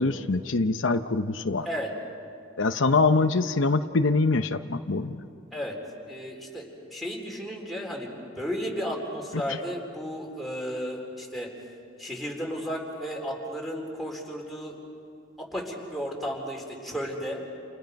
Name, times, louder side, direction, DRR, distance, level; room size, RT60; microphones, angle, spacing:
voice 1, 0.0-1.7 2.6-5.2, left 3 dB, 80° left, 8 dB, 0.8 m, -24 dB
voice 2, 6.1-11.5 12.0-14.8 15.4-17.4, equal, ahead, -1 dB, 4.0 m, -34 dB
29.5 x 29.0 x 5.4 m, 2.5 s
head